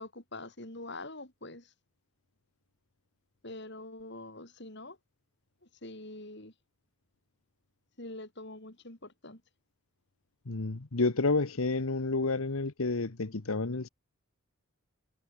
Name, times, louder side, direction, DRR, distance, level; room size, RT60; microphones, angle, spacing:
voice 1, 0.0-1.7 3.4-5.0 5.8-6.5 8.0-9.4, left 2 dB, 55° left, 4.8 m, -44 dB
voice 2, 10.5-13.9, left 3 dB, 80° left, 1.2 m, -30 dB
head